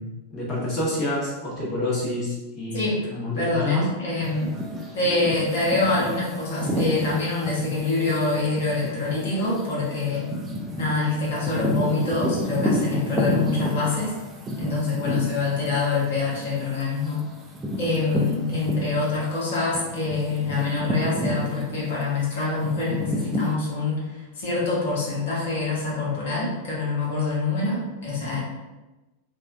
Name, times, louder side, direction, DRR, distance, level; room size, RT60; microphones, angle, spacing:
voice 1, 0.0-3.9, left 1 dB, 30° left, -5 dB, 0.9 m, -28 dB
voice 2, 2.7-3.1 3.4-4.6 4.9-10.3 10.7-14.1 14.6-17.2 17.8-28.4, left 3 dB, 60° left, -6 dB, 0.9 m, -25 dB
sound 1, 4.2-19.3 19.7-23.5, equal, 15° right, 0.4 m, -30 dB
3.4 x 2.2 x 2.3 m, 1.1 s
figure-of-eight pair, 90°, 0 cm